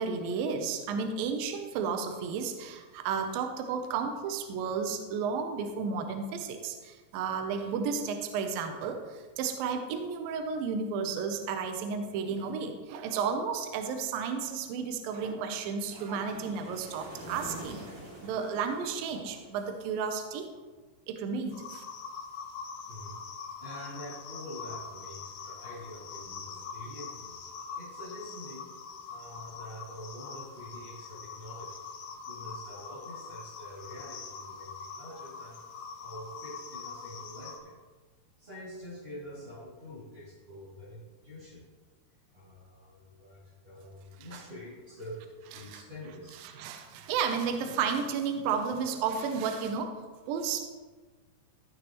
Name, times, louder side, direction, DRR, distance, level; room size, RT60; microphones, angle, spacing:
voice 1, 0.0-17.9 18.2-20.5 21.1-21.8 44.3-44.4 45.6-45.8 46.4-50.0 50.3-50.6, right 6 dB, 75° right, 6 dB, 2.3 m, -32 dB
sound 1, 15.7-19.9, equal, 55° right, 4.0 m, -46 dB
sound 2, 21.5-37.6, left 5 dB, 80° left, 1.7 m, -43 dB
voice 2, 22.9-28.7 29.1-31.8 32.2-35.6 36.0-37.8 38.4-41.6 42.3-46.4, left 1 dB, 20° right, -12 dB, 2.3 m, -46 dB
16.0 x 6.5 x 3.1 m, 1.3 s
omnidirectional pair, 4.6 m